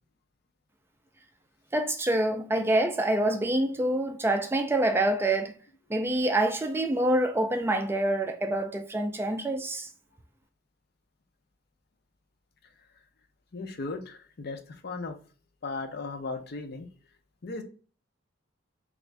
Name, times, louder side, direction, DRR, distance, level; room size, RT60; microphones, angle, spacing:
voice 1, 1.7-5.5 5.9-9.9, right 1 dB, 10° right, 0.3 m, -26 dB
voice 2, 13.5-15.1 15.6-16.9 17.4-17.6, left 3 dB, 55° left, 0.6 m, -36 dB
3.5 x 2.5 x 3.1 m
head